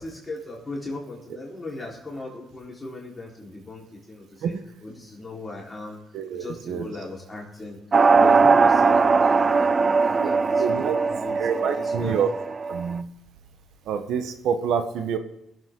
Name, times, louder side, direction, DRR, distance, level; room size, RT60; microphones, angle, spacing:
voice 1, 0.0-4.5 4.8-6.0 6.3-12.2, left 2 dB, 20° left, -4 dB, 4.1 m, -38 dB
voice 2, 6.1-6.9 10.2-10.3 10.6-11.0 11.4-12.3 12.7-13.1 13.9-15.2, right 7 dB, 80° right, 8 dB, 1.1 m, -27 dB
sound 1, 7.9-12.9, right 4 dB, 35° right, 0.4 m, -20 dB
21.5 x 8.0 x 3.8 m, 0.83 s
cardioid pair, 90°, 0 cm